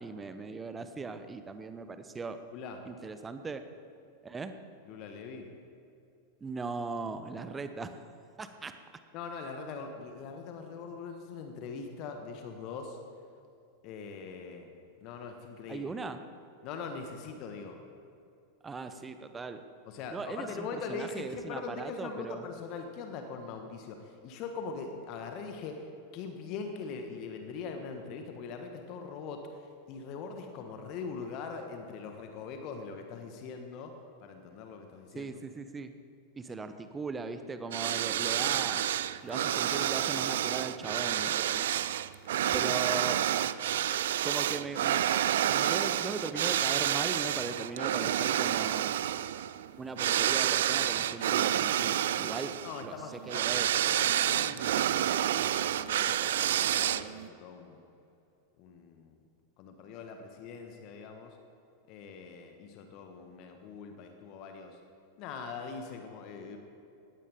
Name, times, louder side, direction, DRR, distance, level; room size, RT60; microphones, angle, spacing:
voice 1, 0.0-2.4 2.9-3.6 4.2-4.5 6.4-7.9 8.4-8.7 15.7-16.2 18.6-19.6 20.1-22.4 35.1-36.0 36.4-38.8 39.2-41.7 42.5-43.2 44.2-45.1 45.4-48.9 49.8-52.5 52.8-52.9 53.3-53.7, right 4 dB, 15° right, 10 dB, 1.0 m, -39 dB
voice 2, 4.9-5.5 9.1-13.0 13.8-14.7 15.0-16.0 16.6-17.8 19.8-35.3 52.6-53.5 53.7-57.8 58.6-59.2 59.6-61.4 61.9-64.8 65.2-66.6, left 5 dB, 40° left, 5 dB, 1.5 m, -42 dB
sound 1, 37.7-57.3, right 11 dB, 60° right, 0.4 m, -29 dB
19.0 x 15.0 x 3.7 m, 2.6 s
figure-of-eight pair, 90°, 0 cm